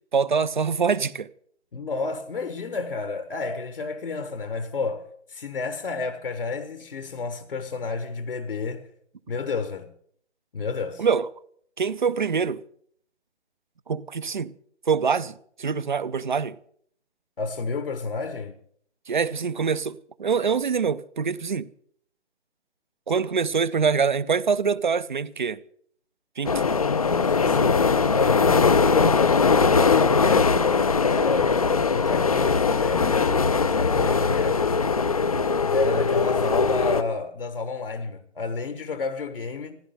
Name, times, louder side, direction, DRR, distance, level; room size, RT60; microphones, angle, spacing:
voice 1, 0.1-1.3 11.0-11.3 11.8-12.6 13.9-14.5 14.9-16.6 19.1-21.7 23.1-25.6 26.4-26.6, right 6 dB, 45° right, 0.6 m, -24 dB
voice 2, 1.7-8.9 9.3-9.9 10.5-11.0 17.4-18.6 27.3-30.6 31.0-31.6 31.9-34.6 35.7-39.8, left 4 dB, 50° left, 1.3 m, -30 dB
sound 1, 26.4-37.0, left 5 dB, 30° left, 0.6 m, -21 dB
15.0 x 12.5 x 6.5 m
figure-of-eight pair, 140°, 35 cm